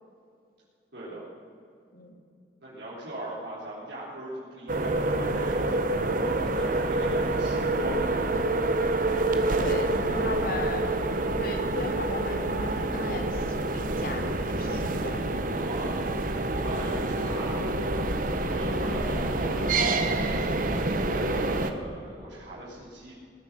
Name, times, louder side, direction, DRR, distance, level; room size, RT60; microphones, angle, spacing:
voice 1, 0.9-1.2 2.6-8.3 8.7-8.8 9.9-11.1 15.5-16.0 16.5-17.6 18.4-23.2, right 1 dB, 80° right, -9 dB, 4.0 m, -39 dB
sound 1, 4.7-21.7, right 2 dB, 50° right, 1.1 m, -27 dB
voice 2, 9.5-10.8 11.4-15.2 18.8-19.1, left 2 dB, 55° left, 4 dB, 2.1 m, -37 dB
20.5 x 8.2 x 7.7 m, 2.4 s
head